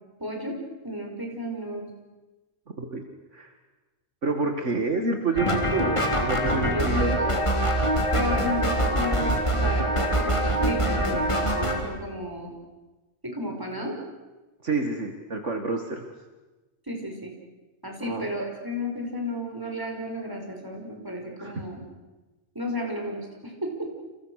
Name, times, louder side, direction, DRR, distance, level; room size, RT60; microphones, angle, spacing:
voice 1, 0.2-0.6 0.8-1.9 6.5-7.3 8.1-12.5 13.2-14.0 16.9-17.3 17.8-21.8 22.5-23.9, equal, 15° right, 1 dB, 5.8 m, -33 dB
voice 2, 4.2-7.1 14.6-16.1 18.0-18.3 21.4-21.6, right 3 dB, 65° right, 4 dB, 2.3 m, -28 dB
sound 1, 5.4-11.8, right 1 dB, 20° left, 3.6 m, -24 dB
30.0 x 28.5 x 6.6 m, 1.2 s
omnidirectional pair, 1.4 m